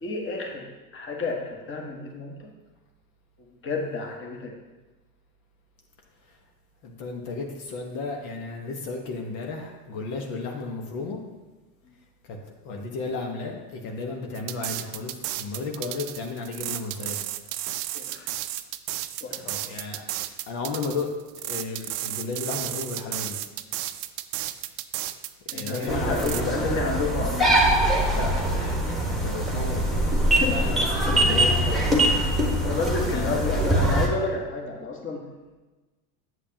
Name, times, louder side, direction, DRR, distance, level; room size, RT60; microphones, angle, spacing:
voice 1, 0.0-2.3 3.6-4.5 11.8-11.9 17.9-18.3 19.2-19.4 25.5-27.5 30.3-30.7 32.6-35.2, left 3 dB, 25° left, 0 dB, 1.4 m, -30 dB
voice 2, 6.8-11.2 12.3-12.4 12.6-17.2 19.4-20.0 20.5-21.1 21.4-23.4 25.5-26.8 28.1-30.1 30.5-32.8 33.1-33.8, left 3 dB, 60° left, 1 dB, 1.2 m, -33 dB
sound 1, 14.3-26.4, right 14 dB, 65° right, 0.6 m, -33 dB
sound 2, 25.9-34.1, right 1 dB, ahead, 1.2 m, -23 dB
8.1 x 7.4 x 2.8 m, 1.2 s
hypercardioid pair, 95°, 48 cm